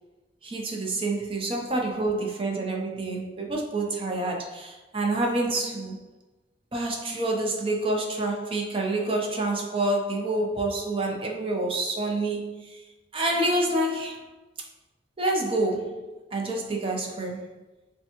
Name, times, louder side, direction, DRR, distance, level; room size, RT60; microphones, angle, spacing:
voice 1, 0.4-6.0 6.7-12.8 13.1-14.3 15.2-17.6, right 2 dB, 30° right, 0 dB, 0.7 m, -28 dB
6.9 x 2.3 x 2.9 m, 1.1 s
head